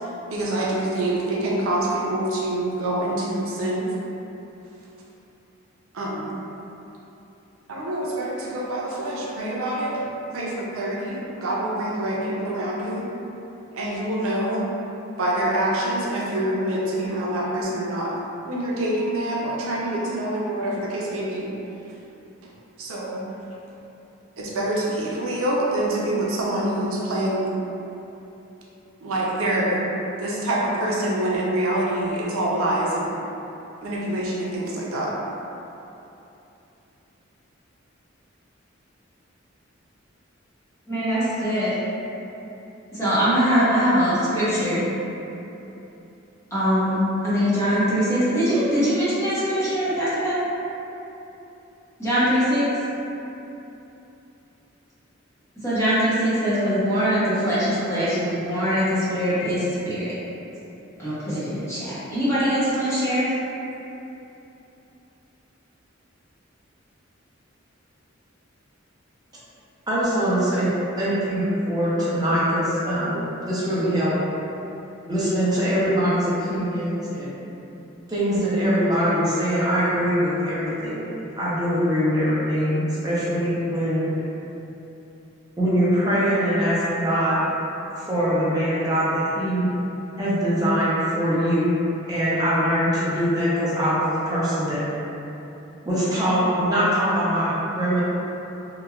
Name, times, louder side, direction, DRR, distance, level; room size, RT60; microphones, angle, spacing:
voice 1, 0.3-3.9 5.9-6.4 7.7-10.0 10.3-13.1 13.7-14.7 15.2-18.1 18.5-21.5 22.8-23.2 24.4-27.5 29.0-29.8 30.2-33.2 33.8-35.1, right 1 dB, 90° right, -4 dB, 0.5 m, -26 dB
voice 2, 40.9-41.7 43.0-44.9 46.5-50.3 52.0-52.6 55.6-60.1 61.0-63.3, equal, 15° left, -12 dB, 0.7 m, -22 dB
voice 3, 69.9-74.2 75.1-77.4 78.1-81.1 81.4-84.1 85.6-87.5 88.0-89.7 90.2-91.7 92.1-94.8 95.8-98.0, equal, 20° right, -9 dB, 0.6 m, -22 dB
2.9 x 2.1 x 2.3 m, 2.9 s
head